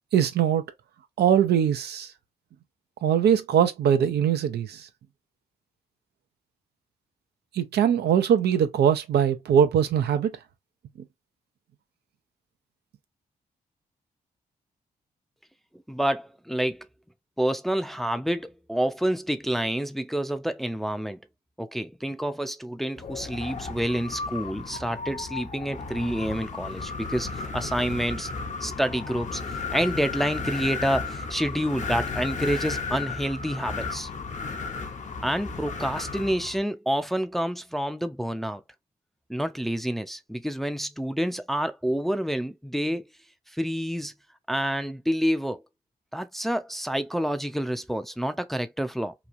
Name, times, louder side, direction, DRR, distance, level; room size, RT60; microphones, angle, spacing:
voice 1, 0.1-0.6 1.2-2.1 3.0-4.9 7.5-10.4, right 8 dB, 75° right, 0.6 m, -22 dB
voice 2, 15.9-16.9 17.4-21.2 21.6-28.3 28.6-29.4 29.7-34.1 35.2-38.6 39.3-43.0 43.5-44.1 44.5-45.6 46.1-49.1, equal, ahead, 0.5 m, -28 dB
Wind, 23.0-36.6, left 4 dB, 45° left, 0.8 m, -34 dB
3.0 x 2.3 x 2.5 m
supercardioid pair, 50°, 17 cm